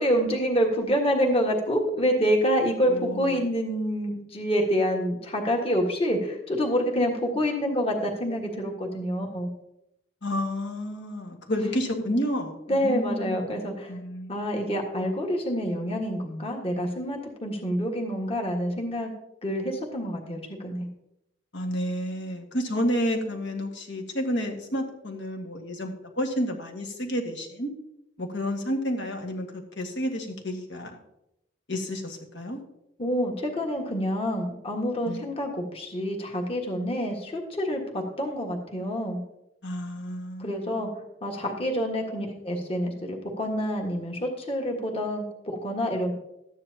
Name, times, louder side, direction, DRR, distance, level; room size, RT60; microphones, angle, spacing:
voice 1, 0.0-9.5 11.5-11.9 12.7-13.9 14.3-19.1 19.4-20.9 33.0-39.2 40.4-40.9 41.2-46.1, equal, 30° left, 1 dB, 1.5 m, -27 dB
voice 2, 2.9-3.5 10.2-14.4 21.5-27.7 28.2-30.9 31.7-32.6 35.0-35.2 39.6-40.9, equal, 75° left, 3 dB, 1.7 m, -30 dB
13.0 x 9.6 x 2.8 m, 0.84 s
head